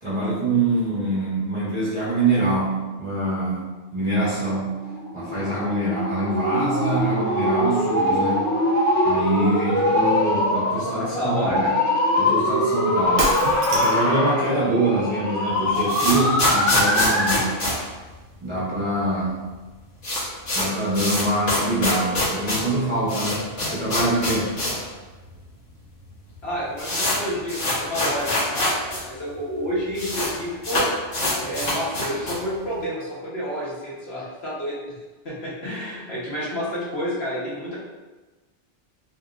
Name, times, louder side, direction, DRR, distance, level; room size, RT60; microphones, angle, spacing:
voice 1, 0.0-4.8 5.1-8.5 9.0-11.7 12.2-13.3 13.7-17.5 18.4-19.4 20.5-24.6, right 2 dB, 30° right, -10 dB, 0.8 m, -24 dB
sound 1, 4.8-17.5, left 1 dB, 20° left, 0.6 m, -23 dB
voice 2, 11.0-11.8 26.4-30.8 31.4-34.9 35.2-37.8, equal, 65° left, -7 dB, 1.2 m, -29 dB
Shatter, 13.2-14.2, right 3 dB, 70° right, 0.8 m, -26 dB
sound 2, 15.5-18.7 19.0-19.1 19.3-19.4 19.7-24.9 25.2-25.3 26.0-26.1 26.3-29.0 29.3-29.4 29.6-30.3 30.6-32.5, left 1 dB, 85° left, 1.3 m, -25 dB
3.0 x 2.8 x 2.3 m, 1.2 s
omnidirectional pair, 1.2 m